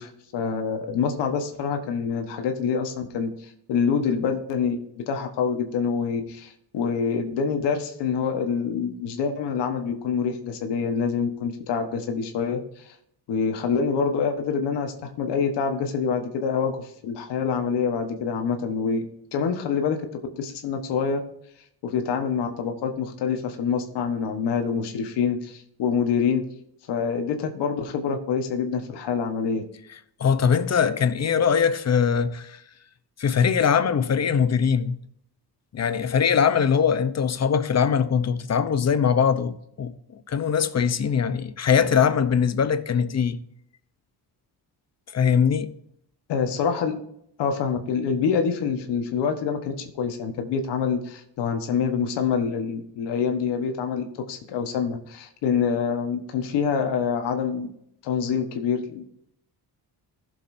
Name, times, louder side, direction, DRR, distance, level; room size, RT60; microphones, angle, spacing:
voice 1, 0.0-4.8 5.1-12.9 13.3-19.1 19.3-20.1 20.4-21.2 21.8-26.4 26.9-29.6 46.3-47.0 47.4-57.7 58.0-59.0, left 6 dB, 90° left, 1.4 m, -26 dB
voice 2, 30.2-32.6 33.2-35.0 35.7-40.0 40.3-43.4 45.1-45.7, left 7 dB, 40° left, 0.9 m, -21 dB
16.0 x 7.0 x 2.7 m
cardioid pair, 95°, 40 cm